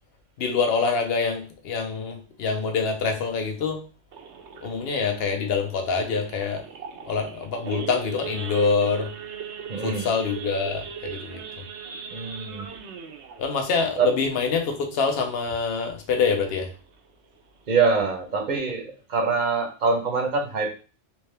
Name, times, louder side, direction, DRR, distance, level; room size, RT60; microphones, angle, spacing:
voice 1, 0.4-3.8 4.6-6.6 7.1-9.1 9.8-11.4 13.4-16.7, left 5 dB, 65° left, 4 dB, 0.9 m, -25 dB
Idling / Accelerating revving vroom / Sawing, 4.1-15.2 15.6-15.8 16.1-16.2 16.6-16.9 17.4-17.5 17.7-18.0, right 6 dB, 80° right, 0.9 m, -39 dB
voice 2, 9.7-10.1 12.1-12.7 14.0-14.1 17.7-20.8, right 4 dB, 45° right, 3 dB, 0.8 m, -24 dB
3.6 x 2.8 x 3.3 m, 0.36 s
omnidirectional pair, 1.2 m